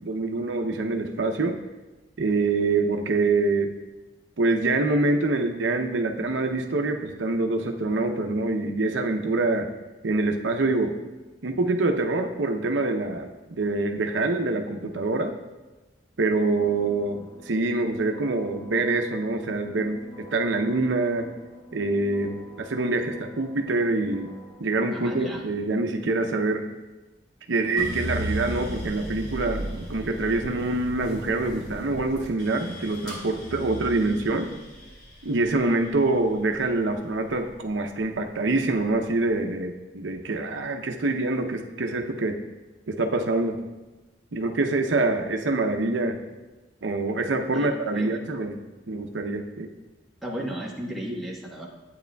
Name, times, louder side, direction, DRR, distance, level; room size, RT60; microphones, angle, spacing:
voice 1, 0.0-1.6 2.2-3.7 4.4-9.7 10.0-11.0 11.4-15.3 16.2-21.3 21.7-24.3 24.6-26.7 27.5-34.5 35.2-42.4 42.9-43.6 44.3-46.2 46.8-48.6 48.9-49.7, right 2 dB, 85° right, 4 dB, 0.7 m, -25 dB
sound 1, 16.3-24.6, equal, 25° left, 2.9 m, -47 dB
voice 2, 24.9-25.4 47.5-47.7 47.9-48.1 50.2-51.7, right 1 dB, ahead, -4 dB, 1.1 m, -34 dB
sound 2, 27.8-38.0 38.4-39.2, equal, 55° left, 2.8 m, -36 dB
11.5 x 8.6 x 2.3 m, 1.1 s
head